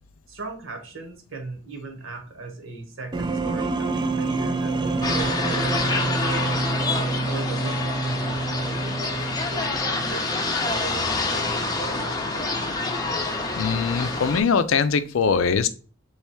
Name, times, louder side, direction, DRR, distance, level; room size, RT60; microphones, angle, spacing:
voice 1, 0.3-6.4 6.9-12.6, right 3 dB, 70° right, 3 dB, 1.2 m, -38 dB
sound 1, 3.1-10.2, right 3 dB, 20° right, 0.4 m, -27 dB
sound 2, 5.0-14.4, left 3 dB, 20° left, 0.6 m, -27 dB
voice 2, 13.5-15.7, left 5 dB, 75° left, 12 dB, 0.5 m, -22 dB
3.4 x 3.1 x 4.4 m, 0.38 s
head